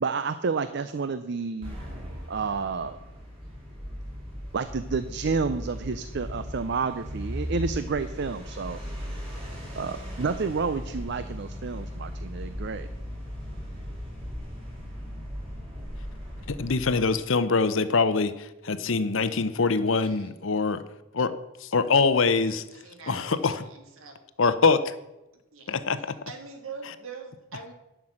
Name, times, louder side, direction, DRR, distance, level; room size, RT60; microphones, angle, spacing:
voice 1, 0.0-1.8 2.3-3.0 4.5-8.8 9.8-12.9, right 4 dB, 50° right, 12 dB, 0.5 m, -30 dB
sound 1, 1.6-17.1, equal, 25° right, 4.1 m, -37 dB
voice 2, 16.5-18.3 18.6-20.8 21.1-21.3 21.7-22.6 23.1-23.6 24.4-24.8 25.7-26.0, left 4 dB, 65° left, 13 dB, 0.7 m, -23 dB
voice 3, 20.0-20.3 22.5-24.2 25.5-25.7 26.3-27.7, right 4 dB, 75° right, 5 dB, 2.0 m, -43 dB
11.0 x 6.0 x 7.7 m, 0.96 s
head